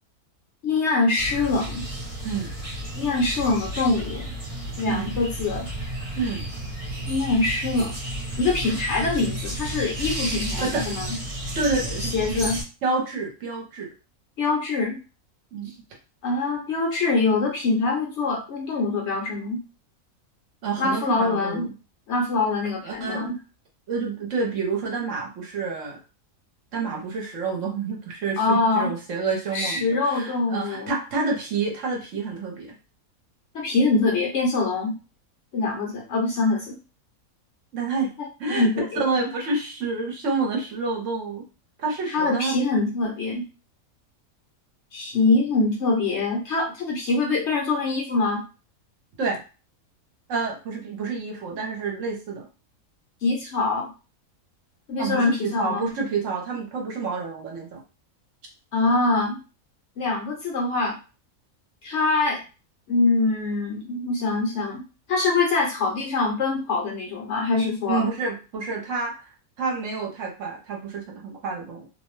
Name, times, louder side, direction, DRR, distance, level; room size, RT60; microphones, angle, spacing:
voice 1, 0.6-1.8 3.0-4.3 4.8-5.7 7.1-7.9 8.4-11.2 12.0-12.6 14.4-15.0 16.2-19.6 20.8-21.7 22.1-23.4 28.4-28.9 29.5-31.0 33.5-34.9 35.5-36.8 38.6-39.0 42.1-43.5 44.9-48.4 53.2-53.9 54.9-55.9 58.7-59.4 60.0-61.0 61.8-62.4 62.9-68.1, left 3 dB, 60° left, 0 dB, 0.8 m, -24 dB
sound 1, 1.2-12.6, right 1 dB, 30° right, 0.7 m, -32 dB
voice 2, 10.6-10.9 11.6-12.5 12.8-13.9 15.5-15.7 20.6-21.7 22.8-23.3 23.9-26.0 26.7-32.7 37.7-38.1 38.4-38.7 39.0-41.4 41.8-42.5 49.2-49.4 50.3-52.5 55.0-57.8 67.8-69.2 69.6-71.9, right 4 dB, 65° right, 0 dB, 1.0 m, -28 dB
2.6 x 2.1 x 3.1 m, 0.32 s
omnidirectional pair, 1.5 m